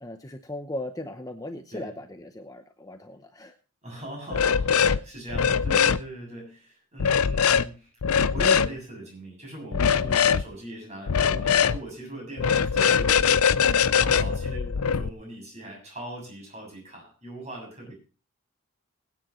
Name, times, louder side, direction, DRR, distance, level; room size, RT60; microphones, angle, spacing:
voice 1, 0.0-3.5 10.0-10.3 14.5-14.8, left 1 dB, 15° left, 6 dB, 0.7 m, -38 dB
voice 2, 3.8-7.9 8.3-17.9, right 1 dB, 30° right, -1 dB, 7.2 m, -40 dB
sound 1, 4.3-5.0 5.3-6.0 7.0-7.6 8.0-8.7 9.7-10.4 11.1-11.8 12.4-15.1, left 7 dB, 80° left, 0.5 m, -22 dB
21.0 x 9.3 x 3.1 m, 0.36 s
head